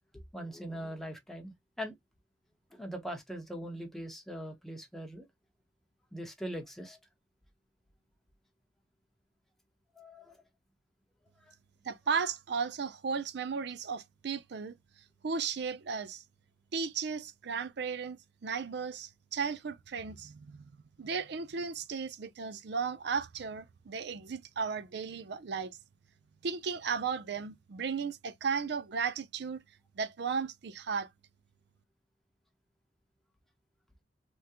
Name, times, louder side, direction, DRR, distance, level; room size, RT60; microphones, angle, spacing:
voice 1, 0.1-1.9 2.7-5.3 6.1-7.0 10.0-10.4 11.4-11.5, equal, ahead, 0.9 m, -41 dB
voice 2, 11.8-14.8 15.2-16.2 16.7-20.6 21.0-25.8 26.4-29.6 30.0-31.1, right 5 dB, 65° right, 0.5 m, -35 dB
3.6 x 2.1 x 2.8 m
head